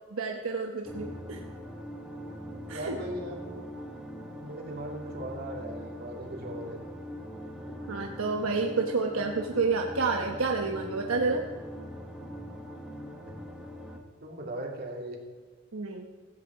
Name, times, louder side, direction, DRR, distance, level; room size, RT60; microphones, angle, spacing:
voice 1, 0.1-1.4 2.7-3.0 7.9-11.5 15.7-16.1, right 4 dB, 80° right, 2 dB, 1.1 m, -29 dB
sound 1, 0.8-14.0, equal, 5° right, 1.6 m, -42 dB
voice 2, 2.7-3.6 4.4-6.9 7.4-7.8 13.3-13.4 14.2-15.2, right 1 dB, 50° right, 0 dB, 3.0 m, -39 dB
16.5 x 15.0 x 4.8 m, 1.5 s
head